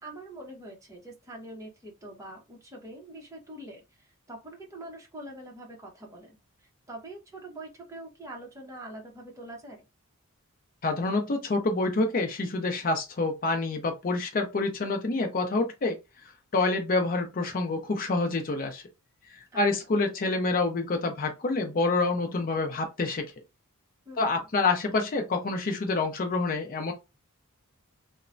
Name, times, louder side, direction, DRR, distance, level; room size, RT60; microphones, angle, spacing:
voice 1, 0.0-6.4 6.9-9.8 19.5-19.6 24.1-24.4, right 1 dB, 15° right, 0.8 m, -44 dB
voice 2, 10.8-15.9 16.5-18.8 19.5-23.2 24.2-26.9, left 3 dB, 40° left, 0.5 m, -27 dB
3.0 x 2.1 x 2.5 m
head